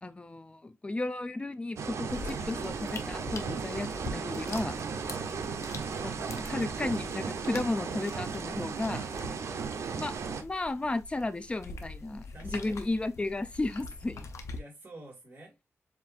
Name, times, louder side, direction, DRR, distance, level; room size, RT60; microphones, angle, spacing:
voice 1, 0.0-4.8 6.0-9.1 10.0-10.1 10.4-14.3, left 2 dB, 20° left, 0.5 m, -34 dB
sound 1, 1.8-10.4, right 5 dB, 75° right, 0.7 m, -36 dB
sound 2, 2.1-14.6, left 3 dB, 80° left, 0.8 m, -44 dB
voice 2, 12.3-12.8 14.5-15.6, right 1 dB, 40° right, 2.2 m, -50 dB
7.3 x 2.7 x 2.5 m
wide cardioid pair, 125°, 5 cm